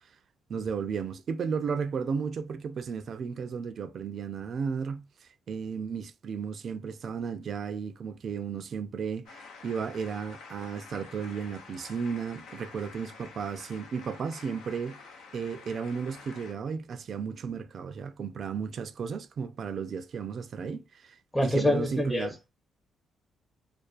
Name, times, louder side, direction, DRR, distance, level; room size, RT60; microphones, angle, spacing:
voice 1, 0.5-15.0 15.3-22.3, right 6 dB, 55° right, 0.3 m, -34 dB
sound 1, 9.3-16.5, left 4 dB, 80° left, 0.5 m, -49 dB
voice 2, 21.3-22.3, left 1 dB, 10° left, 0.6 m, -25 dB
2.3 x 2.3 x 2.4 m
cardioid pair, 90°, 0 cm